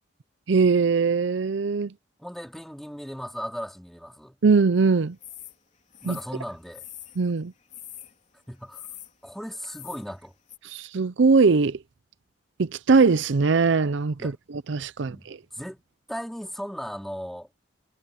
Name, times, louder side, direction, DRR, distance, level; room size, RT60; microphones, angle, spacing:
voice 1, 0.5-1.9 4.4-5.2 6.0-6.2 7.2-7.5 10.6-11.8 12.6-14.3 14.7-15.4, right 4 dB, 70° right, 0.5 m, -21 dB
voice 2, 2.2-4.4 6.0-6.9 8.5-8.9 9.2-10.3 14.2-14.4 15.0-15.8 16.1-17.5, equal, ahead, 4.3 m, -37 dB
sound 1, 5.2-5.6 5.9-7.2 7.7-8.2 8.7-9.1 9.6-10.1 10.5-10.6, left 11 dB, 35° left, 4.2 m, -43 dB
head